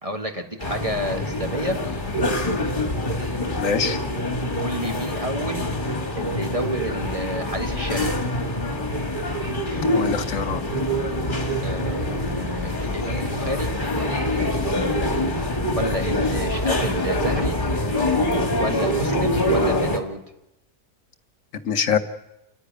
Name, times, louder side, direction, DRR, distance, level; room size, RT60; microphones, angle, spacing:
voice 1, 0.0-1.8 4.5-5.7 6.1-8.2 11.6-13.7 15.7-17.6 18.6-20.2, right 1 dB, 25° right, 4 dB, 1.7 m, -30 dB
sound 1, 0.6-20.0, left 1 dB, 30° left, 2.3 m, -25 dB
voice 2, 3.6-4.0 9.9-10.6 21.6-22.0, left 6 dB, 60° left, 9 dB, 1.2 m, -23 dB
29.0 x 9.9 x 9.6 m, 0.91 s
omnidirectional pair, 1.6 m